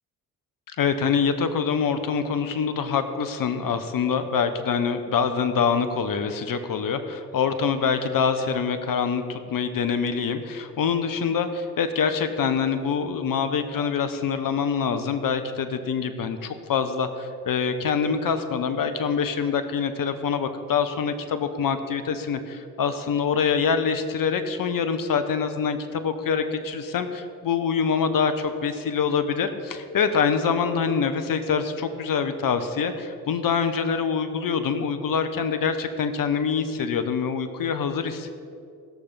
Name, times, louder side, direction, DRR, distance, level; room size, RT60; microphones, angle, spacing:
voice 1, 0.8-38.3, left 6 dB, 50° left, 9 dB, 1.2 m, -25 dB
16.0 x 6.7 x 5.7 m, 2.5 s
hypercardioid pair, 50°, 44 cm